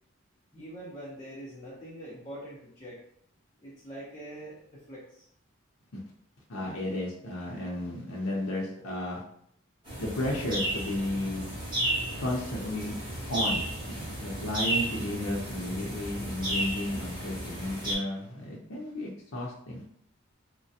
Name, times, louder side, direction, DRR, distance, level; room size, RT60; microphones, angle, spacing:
voice 1, 0.5-3.0 3.6-5.3, right 1 dB, 20° left, -8 dB, 0.6 m, -44 dB
voice 2, 6.5-9.2 10.0-11.5 12.2-13.0 13.3-19.8, left 1 dB, 75° left, -3 dB, 0.6 m, -33 dB
sound 1, 9.8-17.9, right 1 dB, 20° right, 1.1 m, -33 dB
3.2 x 2.2 x 2.7 m, 0.66 s
head